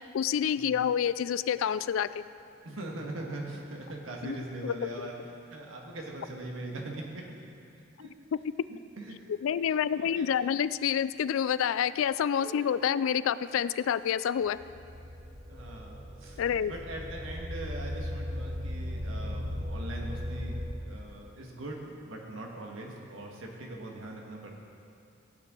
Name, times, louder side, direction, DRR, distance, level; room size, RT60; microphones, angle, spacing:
voice 1, 0.1-2.2 4.2-4.4 4.6-4.7 9.4-14.6 16.4-16.7, left 8 dB, 85° left, 16 dB, 0.3 m, -28 dB
voice 2, 2.6-7.3 8.0-8.1 9.0-9.2 9.8-10.3 12.4-13.2 15.5-20.5 20.8-24.6, right 1 dB, 90° right, -1 dB, 1.7 m, -41 dB
sound 1, 14.4-20.7, left 1 dB, 75° right, 1.6 m, -37 dB
15.0 x 9.2 x 3.8 m, 2.5 s
head